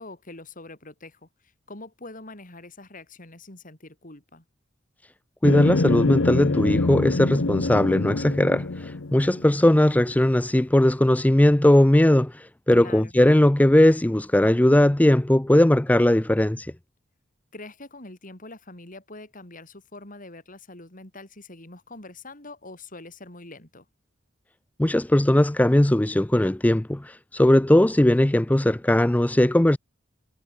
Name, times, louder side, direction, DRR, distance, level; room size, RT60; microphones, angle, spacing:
voice 1, 0.0-4.4 12.7-13.2 17.5-23.9, left 2 dB, 45° left, 4.8 m, -44 dB
sound 1, 5.4-9.9, left 2 dB, 75° left, 1.0 m, -25 dB
voice 2, 5.4-16.7 24.8-29.8, left 1 dB, 10° left, 0.4 m, -19 dB
head